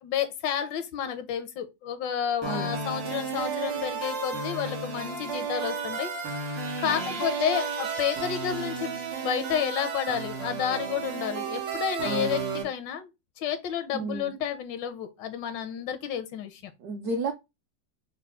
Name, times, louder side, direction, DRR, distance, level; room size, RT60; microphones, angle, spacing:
voice 1, 0.0-6.1 6.4-13.1 13.4-16.7, left 8 dB, 85° left, 1.3 m, -31 dB
voice 2, 2.4-2.7 6.8-7.2 12.0-12.4 13.9-14.3 16.8-17.3, right 3 dB, 70° right, 1.0 m, -32 dB
sound 1, 2.4-12.6, right 5 dB, 90° right, 2.4 m, -33 dB
5.5 x 2.2 x 3.5 m
omnidirectional pair, 1.9 m